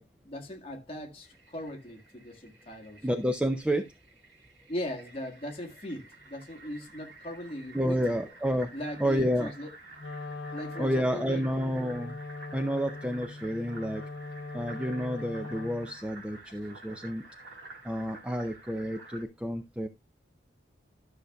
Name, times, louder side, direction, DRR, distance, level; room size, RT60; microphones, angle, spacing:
voice 1, 0.0-3.0 3.7-3.8 4.7-8.2 8.7-9.7 10.5-11.4, left 1 dB, 30° left, 1.7 m, -39 dB
Fill (with liquid), 1.2-19.2, right 3 dB, 65° right, 2.3 m, -51 dB
voice 2, 3.0-3.8 7.7-8.7 9.0-9.5 10.8-12.2 12.5-14.0 14.5-17.2 17.8-19.9, equal, 5° right, 0.5 m, -30 dB
Wind instrument woodwind instrument, 9.9-16.0, left 3 dB, 75° left, 0.7 m, -41 dB
12.5 x 6.5 x 2.3 m
head